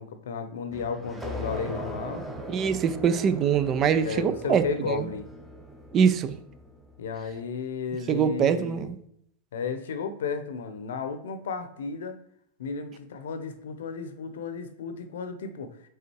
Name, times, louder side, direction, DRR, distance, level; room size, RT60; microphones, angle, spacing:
voice 1, 0.0-2.2 4.0-5.3 7.0-8.9 9.5-12.2 12.6-15.8, left 5 dB, 85° left, 9 dB, 0.8 m, -33 dB
sound 1, 0.7-7.1, equal, 5° right, 1.0 m, -40 dB
voice 2, 2.5-5.1 5.9-6.4 8.1-9.0, right 7 dB, 30° right, 12 dB, 0.5 m, -24 dB
5.6 x 3.7 x 4.6 m, 0.71 s
supercardioid pair, 130°, 0 cm